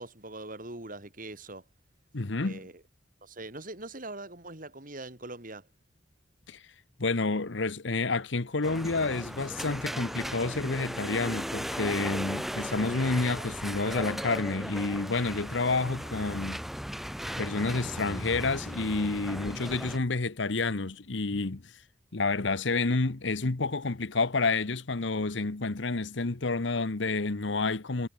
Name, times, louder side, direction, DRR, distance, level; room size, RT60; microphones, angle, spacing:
voice 1, 0.0-1.6 2.2-2.8 3.2-5.7, right 2 dB, 45° right, 4.1 m, -42 dB
voice 2, 2.1-2.6 6.5-6.6 7.0-16.6 17.4-21.7 22.1-28.1, left 3 dB, 70° left, 1.1 m, -29 dB
sound 1, 8.6-20.0, equal, ahead, 3.9 m, -37 dB
head